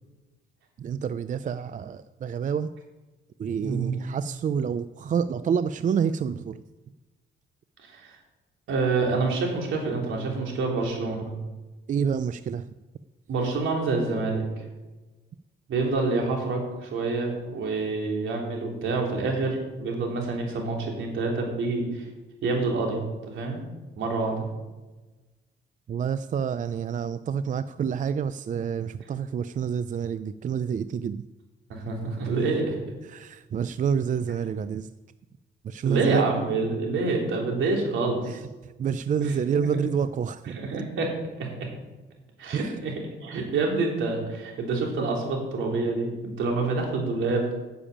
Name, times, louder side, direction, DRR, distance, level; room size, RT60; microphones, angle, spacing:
voice 1, 0.8-2.7 3.4-6.6 11.9-12.6 25.9-31.2 33.1-34.9 35.6-36.2 38.2-38.4 38.8-40.8 42.5-42.8, right 7 dB, 40° right, 14 dB, 0.4 m, -28 dB
voice 2, 3.6-4.0 7.8-8.2 8.7-11.3 13.3-14.4 15.7-22.0 22.4-23.6 24.0-24.4 31.7-32.8 35.8-38.4 39.2-39.7 40.5-41.1 41.4-41.7 42.4-42.9 43.2-47.5, right 3 dB, 75° right, 0 dB, 3.4 m, -27 dB
9.9 x 7.1 x 8.7 m, 1.2 s
cardioid pair, 90°, 20 cm